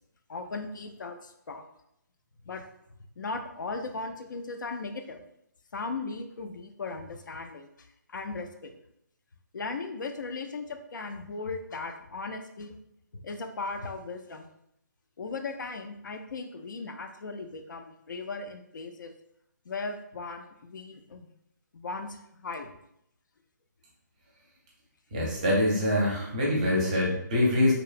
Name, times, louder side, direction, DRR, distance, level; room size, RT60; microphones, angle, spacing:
voice 1, 0.3-1.6 2.5-2.6 3.2-5.2 5.7-7.7 8.1-8.7 9.5-12.8 13.1-14.5 15.2-19.1 19.7-21.3 21.7-22.7, left 3 dB, 80° left, 6 dB, 0.4 m, -37 dB
voice 2, 25.1-27.7, left 1 dB, 25° right, -4 dB, 0.5 m, -24 dB
2.8 x 2.0 x 2.4 m, 0.76 s
hypercardioid pair, 165°, 10 cm